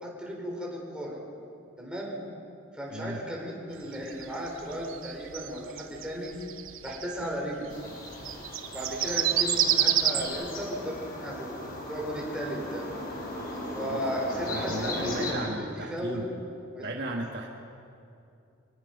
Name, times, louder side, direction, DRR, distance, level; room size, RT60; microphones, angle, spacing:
voice 1, 0.0-1.2 1.8-2.2 2.7-6.4 6.8-7.7 8.7-12.9 13.7-16.3 16.7-16.9, equal, 5° right, -2 dB, 4.4 m, -35 dB
sound 1, 3.9-7.2 8.1-10.3, right 11 dB, 75° right, 0.9 m, -27 dB
sound 2, 7.7-15.3, left 2 dB, 45° left, 4.8 m, -37 dB
voice 2, 14.4-16.3 16.8-17.5, right 1 dB, 55° right, 1 dB, 1.6 m, -35 dB
26.0 x 19.5 x 5.5 m, 2.6 s
head